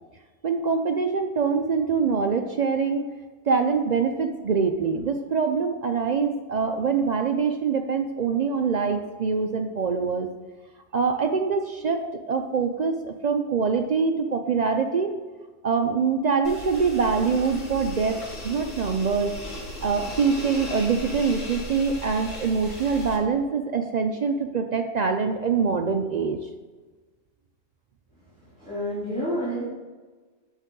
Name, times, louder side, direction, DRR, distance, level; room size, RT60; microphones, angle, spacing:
voice 1, 0.4-3.1 3.5-10.3 10.9-12.0 12.3-15.1 15.6-19.3 19.8-26.4, right 5 dB, 75° right, 5 dB, 0.4 m, -24 dB
sound 1, 16.4-23.2, equal, 85° left, 2.2 m, -37 dB
voice 2, 28.3-29.6, equal, 5° left, -11 dB, 2.5 m, -30 dB
8.1 x 6.7 x 3.7 m, 1.3 s
omnidirectional pair, 1.3 m